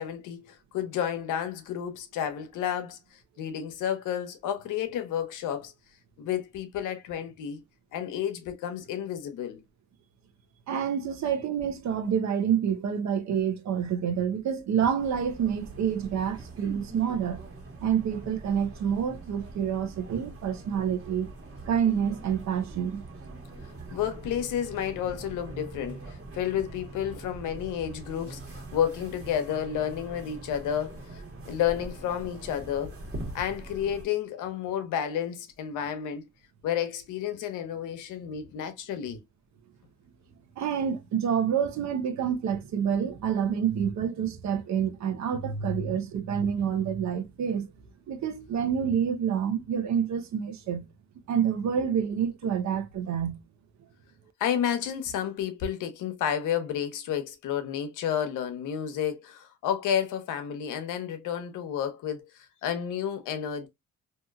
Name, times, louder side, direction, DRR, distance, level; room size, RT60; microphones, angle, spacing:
voice 1, 0.0-5.7 6.2-7.6 7.9-9.6 23.6-32.9 33.3-36.2 36.6-39.2 54.4-63.7, left 9 dB, 85° left, 0.8 m, -31 dB
voice 2, 10.7-17.4 17.8-21.3 21.7-23.0 23.9-24.0 40.6-47.7 48.1-50.8 51.3-53.4, right 8 dB, 65° right, 0.7 m, -28 dB
sound 1, 15.0-34.0, right 2 dB, 50° right, 1.3 m, -43 dB
2.8 x 2.6 x 2.3 m
cardioid pair, 90°, 30 cm